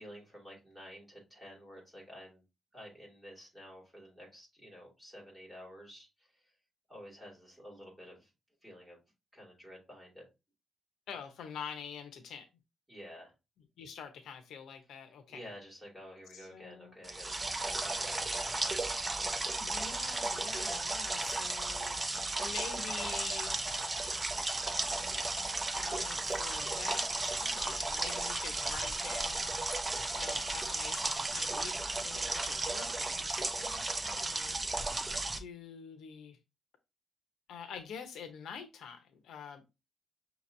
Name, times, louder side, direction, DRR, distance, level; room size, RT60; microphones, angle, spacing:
voice 1, 0.0-2.4 2.7-6.5 6.9-8.3 8.6-9.0 9.3-10.3 12.9-13.3 15.3-19.4, equal, 5° right, 2.5 m, -51 dB
voice 2, 11.1-12.5 13.8-15.5 16.3-16.9 19.6-22.0 22.4-23.6 25.7-29.7 30.1-34.6 35.2-36.4 37.5-39.6, left 7 dB, 85° left, 0.7 m, -46 dB
sound 1, 17.0-35.4, right 2 dB, 20° right, 0.5 m, -34 dB
5.8 x 2.9 x 2.6 m
cardioid pair, 140°, 0 cm